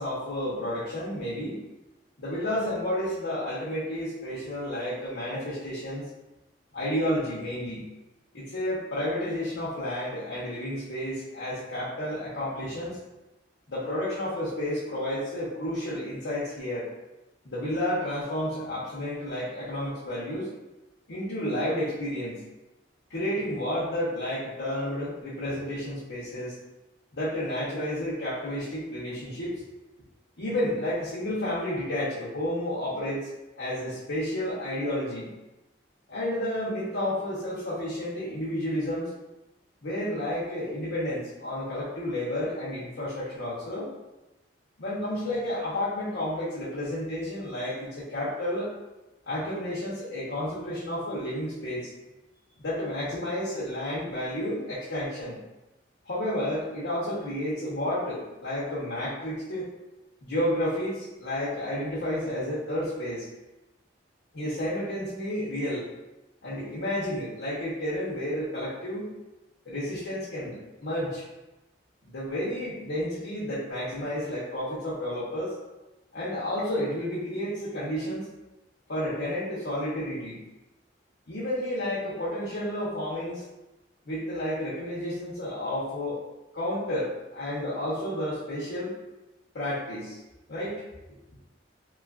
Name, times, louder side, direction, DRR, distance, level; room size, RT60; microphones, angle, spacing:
voice 1, 0.0-1.6 2.2-6.1 6.7-7.9 8.3-13.0 13.7-16.9 17.4-20.5 21.1-22.4 23.1-26.5 27.1-29.6 30.4-33.3 33.6-35.3 36.1-39.1 39.8-43.9 44.8-48.7 49.3-51.9 52.6-55.4 56.1-59.7 60.2-63.3 64.3-65.9 66.4-69.1 69.6-71.3 72.0-75.6 76.1-78.3 78.9-80.4 81.3-83.4 84.0-86.3 86.5-88.9 89.5-90.2 90.5-90.8, left 1 dB, 80° left, -9 dB, 0.8 m, -31 dB
3.0 x 2.4 x 2.4 m, 1.0 s
head